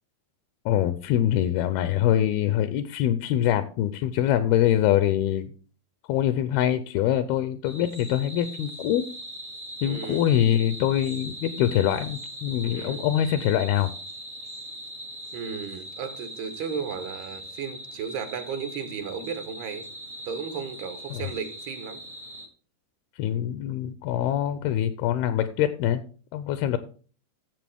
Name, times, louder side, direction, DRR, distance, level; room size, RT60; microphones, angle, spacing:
voice 1, 0.7-5.5 6.1-9.1 9.8-13.9 21.1-21.3 23.2-26.0 26.3-26.8, left 11 dB, 80° left, 2.4 m, -24 dB
sound 1, 7.6-22.5, right 1 dB, 60° right, 0.7 m, -40 dB
voice 2, 9.8-10.2 12.7-13.1 15.3-19.9 20.3-22.0, right 6 dB, 80° right, 3.1 m, -34 dB
13.5 x 7.3 x 3.5 m
omnidirectional pair, 4.6 m